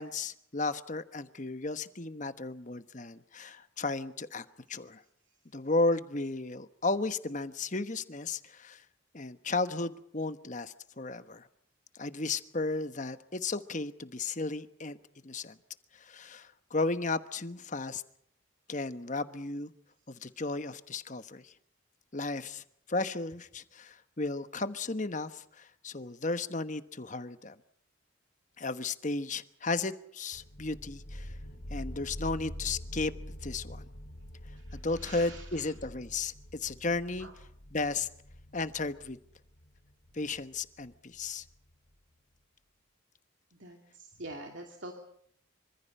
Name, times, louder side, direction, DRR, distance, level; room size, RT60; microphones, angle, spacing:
voice 1, 0.0-5.0 5.5-8.8 9.1-11.5 11.9-15.0 15.2-15.6 15.9-18.0 18.7-19.7 20.1-21.5 22.1-27.6 28.6-31.4 31.7-33.1 33.4-33.8 34.7-37.3 37.7-38.1 38.5-39.2 40.1-41.4, left 3 dB, 40° left, 11 dB, 1.2 m, -34 dB
sound 1, 30.3-41.7, equal, 60° left, 3.6 m, -45 dB
voice 2, 34.6-35.7 37.2-37.3 43.6-44.9, right 2 dB, 65° right, 3 dB, 2.7 m, -46 dB
26.0 x 25.0 x 5.5 m, 0.69 s
head